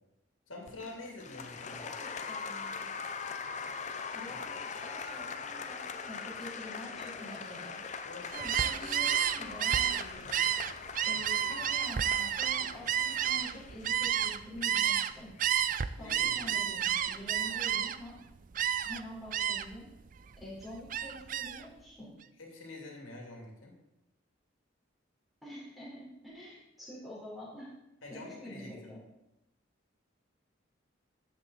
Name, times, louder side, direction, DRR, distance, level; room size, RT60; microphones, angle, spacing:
voice 1, 0.5-1.8 4.3-4.4 8.0-8.8 15.9-16.5 22.4-23.7 28.0-29.0, left 2 dB, 85° left, 0 dB, 2.7 m, -47 dB
Applause, 0.7-17.8, left 5 dB, 35° left, 0.6 m, -42 dB
voice 2, 1.7-3.0 4.1-7.8 8.3-10.1 11.0-15.3 16.0-18.2 18.8-19.9 20.4-22.1 25.4-27.7 28.1-29.0, equal, ahead, -7 dB, 4.3 m, -47 dB
Gull seagull, 8.3-15.1 15.4-18.1 18.5-19.0 19.3-19.8 20.2-21.6, right 9 dB, 40° right, 0.4 m, -30 dB
13.0 x 8.2 x 4.1 m, 0.93 s
head